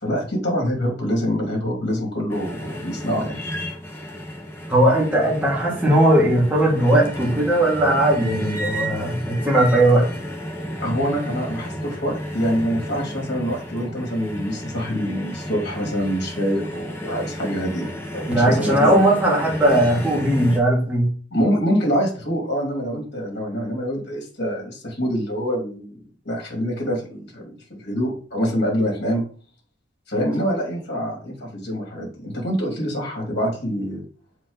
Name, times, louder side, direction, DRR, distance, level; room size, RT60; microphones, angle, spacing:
voice 1, 0.0-3.4 10.8-19.0 21.3-29.2 30.1-34.0, equal, 55° left, -1 dB, 2.8 m, -25 dB
sound 1, 2.3-20.6, equal, 10° left, 1.1 m, -32 dB
voice 2, 4.7-10.1 18.3-21.1, right 1 dB, 5° right, -5 dB, 2.5 m, -18 dB
7.1 x 4.7 x 4.0 m, 0.41 s
head